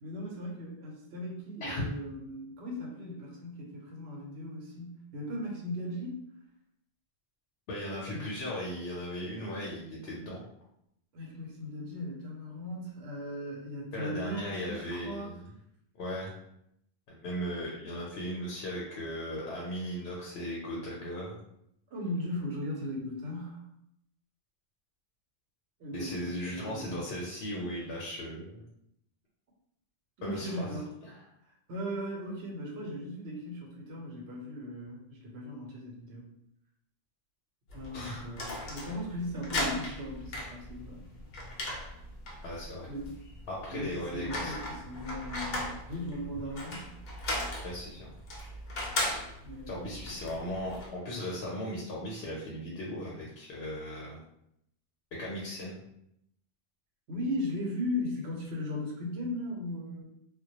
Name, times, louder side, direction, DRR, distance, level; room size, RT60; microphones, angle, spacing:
voice 1, 0.0-6.2 8.1-8.3 11.1-15.3 21.9-23.6 25.8-27.0 30.2-30.9 31.7-36.3 37.7-41.1 42.9-43.1 43.7-46.9 49.4-50.0 57.1-60.0, left 1 dB, 85° right, -1 dB, 0.9 m, -38 dB
voice 2, 7.7-10.4 13.9-15.5 16.0-16.4 17.1-21.4 25.9-28.6 30.2-31.2 37.9-38.3 42.4-42.9 43.5-44.5 47.6-48.1 49.7-54.2 55.1-55.8, equal, 80° left, -4 dB, 0.8 m, -37 dB
sound 1, 37.7-50.9, left 1 dB, 55° left, 0.6 m, -38 dB
2.1 x 2.1 x 2.8 m, 0.76 s
omnidirectional pair, 1.1 m